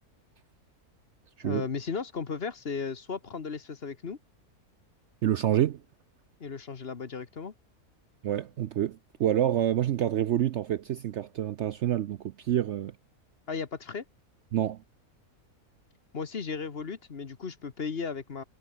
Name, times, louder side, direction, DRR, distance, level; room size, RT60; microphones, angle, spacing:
voice 1, 1.4-4.2 6.4-7.5 13.5-14.0 16.1-18.4, left 5 dB, 45° left, 1.4 m, -35 dB
voice 2, 5.2-5.8 8.2-12.9 14.5-14.8, right 11 dB, 65° right, 0.8 m, -27 dB
omnidirectional pair, 1.6 m